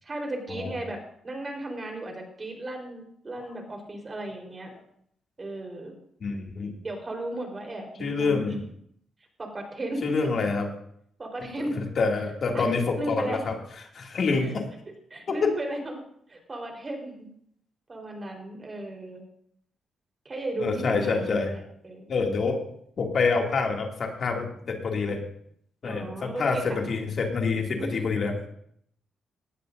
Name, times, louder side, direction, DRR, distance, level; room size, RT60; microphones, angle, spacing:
voice 1, 0.0-4.7 5.4-5.9 6.8-8.6 9.4-10.2 11.2-11.7 12.5-12.7 13.0-13.4 14.4-14.5 15.1-16.0 16.3-17.3 17.9-19.2 20.2-22.1 25.8-26.8 27.8-28.1, right 1 dB, 35° right, 2 dB, 4.0 m, -35 dB
voice 2, 6.2-6.7 8.0-8.6 10.0-10.7 11.7-13.5 13.9-14.7 15.3-15.5 20.6-21.5 22.1-22.6 23.0-25.2 25.8-28.3, left 4 dB, 60° left, 1 dB, 2.4 m, -26 dB
18.0 x 13.0 x 2.6 m, 0.68 s
cardioid pair, 70°, 0 cm